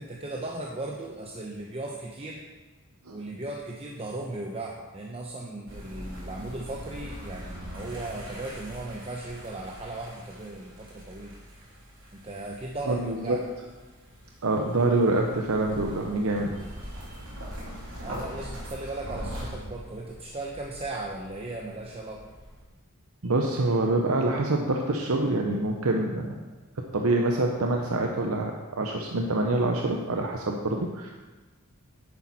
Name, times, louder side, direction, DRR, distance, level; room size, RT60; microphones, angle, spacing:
voice 1, 0.0-2.4 3.1-11.4 12.1-13.4 18.0-22.2, right 2 dB, 30° right, 0 dB, 0.8 m, -37 dB
sound 1, 5.7-22.6, equal, 65° right, 3.1 m, -42 dB
voice 2, 12.9-13.4 14.4-16.6 17.1-17.2 23.2-26.4 26.8-31.1, right 2 dB, 85° right, 2 dB, 0.9 m, -26 dB
10.5 x 8.6 x 4.2 m, 1.3 s
head